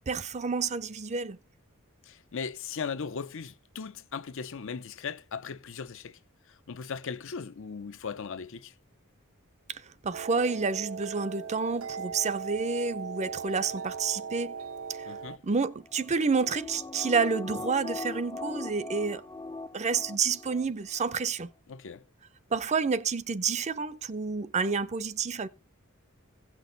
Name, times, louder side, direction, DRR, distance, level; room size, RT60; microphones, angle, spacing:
voice 1, 0.1-1.4 9.7-14.5 14.9-15.1 15.4-19.2 19.7-21.5 22.5-25.5, right 5 dB, 35° right, 0.5 m, -29 dB
voice 2, 2.0-6.2 6.5-8.7 15.1-15.4 21.7-22.0, left 5 dB, 65° left, 0.7 m, -38 dB
sound 1, 10.1-15.4, right 6 dB, 70° right, 0.7 m, -39 dB
sound 2, 15.9-20.6 21.0-21.1, left 2 dB, 20° left, 0.5 m, -40 dB
16.0 x 6.1 x 3.9 m
head